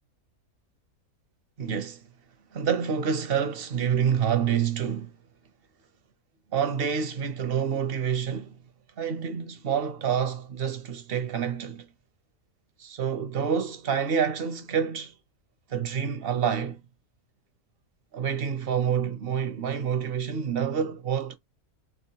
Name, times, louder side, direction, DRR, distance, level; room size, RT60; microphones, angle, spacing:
voice 1, 1.6-2.1 2.5-5.2 6.5-8.6 9.0-11.9 12.8-15.1 15.7-16.8 18.1-21.4, right 7 dB, 55° right, 0.7 m, -27 dB
3.5 x 2.9 x 2.8 m
omnidirectional pair, 1.6 m